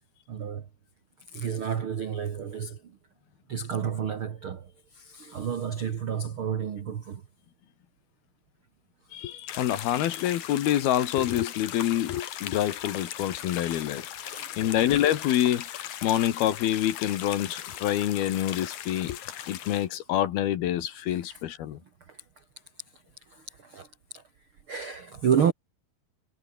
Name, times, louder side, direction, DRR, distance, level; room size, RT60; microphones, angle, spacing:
voice 1, 0.3-0.6 1.3-2.9 3.5-7.2 13.4-13.9 14.2-14.5 19.2-19.6 21.1-21.4 22.1-22.2 23.3-23.9 24.1-24.2 24.7-25.5, right 7 dB, 50° right, 1.6 m, -31 dB
voice 2, 9.1-19.2 19.5-21.8, left 12 dB, 80° left, 3.4 m, -27 dB
sound 1, 9.5-19.9, left 11 dB, 60° left, 2.6 m, -38 dB
omnidirectional pair, 4.4 m